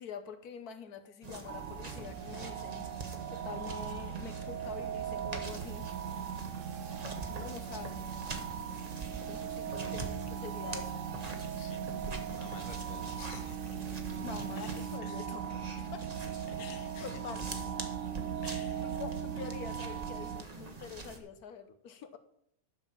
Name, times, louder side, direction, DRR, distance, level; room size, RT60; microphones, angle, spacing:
voice 1, 0.0-2.9 3.3-5.9 7.3-8.0 9.3-11.0 14.2-15.4 15.9-16.1 17.0-17.9 18.8-22.2, left 6 dB, 85° left, 9 dB, 1.4 m, -45 dB
sound 1, 1.2-21.2, right 3 dB, 30° right, 1.1 m, -44 dB
sound 2, 1.5-20.4, right 8 dB, 65° right, 0.9 m, -39 dB
sound 3, 5.4-15.0, right 11 dB, 85° right, 1.2 m, -56 dB
voice 2, 11.5-13.8 14.5-14.7 15.0-15.3 15.8-15.9 16.5-17.2 18.4-19.0 19.4-19.5 20.2-20.3, left 8 dB, 60° left, 8 dB, 1.3 m, -52 dB
11.0 x 5.3 x 7.3 m, 0.73 s
omnidirectional pair, 1.6 m